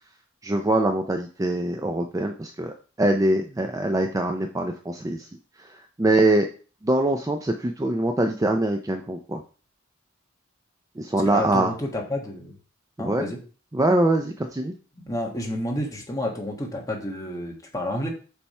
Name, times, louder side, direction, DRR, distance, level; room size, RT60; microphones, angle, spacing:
voice 1, 0.4-5.3 5.6-6.5 6.8-9.4 11.0-11.7 13.0-13.3 13.7-14.7, right 1 dB, 15° right, 4 dB, 0.4 m, -23 dB
voice 2, 11.2-12.5 13.0-13.4 15.1-18.1, left 1 dB, 15° left, 0 dB, 1.5 m, -30 dB
7.0 x 3.5 x 4.3 m, 0.38 s
head